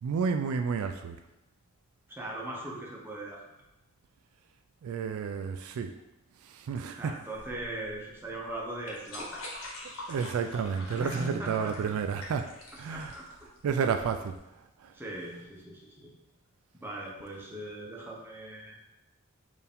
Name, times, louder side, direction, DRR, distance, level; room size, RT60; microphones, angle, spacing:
voice 1, 0.0-1.2 4.8-5.9 6.4-7.2 10.1-12.5 12.8-13.2 13.6-14.4 14.8-14.9, right 6 dB, 80° right, 6 dB, 0.3 m, -31 dB
voice 2, 2.1-3.5 7.0-9.4 11.0-11.9 12.9-13.3 14.9-16.1 16.8-18.8, right 1 dB, 10° right, -3 dB, 0.7 m, -39 dB
sound 1, 7.3-14.4, left 2 dB, 85° left, 1.1 m, -45 dB
4.5 x 2.6 x 3.5 m, 0.94 s
head